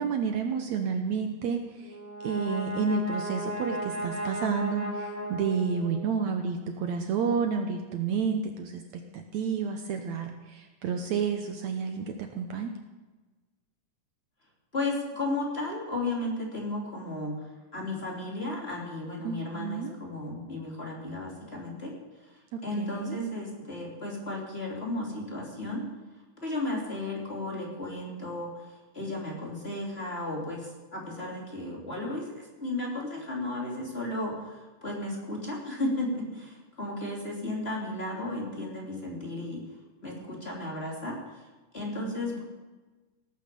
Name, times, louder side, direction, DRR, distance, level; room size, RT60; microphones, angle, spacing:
voice 1, 0.0-2.0 2.2-8.8 9.1-12.7 19.2-19.9 22.5-23.2 41.9-42.4, right 5 dB, 70° right, 5 dB, 2.1 m, -30 dB
Brass instrument, 1.8-6.2, right 1 dB, 10° right, 3.1 m, -36 dB
voice 2, 14.7-17.5 17.7-21.9 22.6-25.8 26.4-28.7 28.9-39.6 40.0-41.5 41.7-42.4, left 2 dB, 20° left, -3 dB, 2.9 m, -34 dB
18.0 x 9.2 x 6.8 m, 1.2 s
omnidirectional pair, 3.7 m